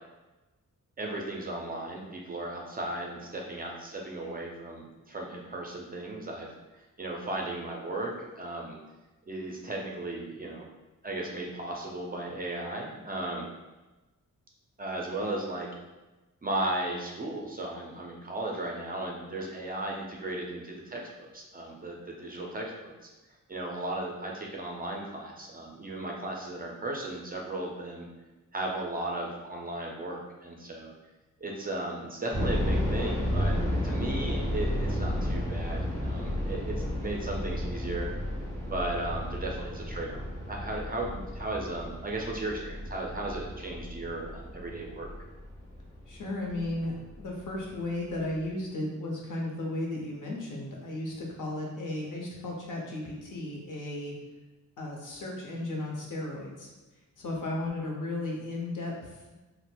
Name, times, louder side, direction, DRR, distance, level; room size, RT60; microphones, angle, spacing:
voice 1, 1.0-6.5 6.8-8.8 9.3-10.7 11.0-13.5 14.8-15.7 16.4-23.0 23.5-28.1 28.5-30.9 31.4-38.3 38.7-45.1, right 2 dB, 30° right, -1 dB, 0.4 m, -36 dB
sound 1, 32.3-47.2 47.5-47.6 48.2-48.4, left 1 dB, 10° left, 1.3 m, -32 dB
voice 2, 46.1-54.2 54.8-56.7 57.2-58.9, left 2 dB, 70° left, -2 dB, 0.7 m, -35 dB
4.1 x 2.0 x 2.2 m, 1.1 s
wide cardioid pair, 130°, 32 cm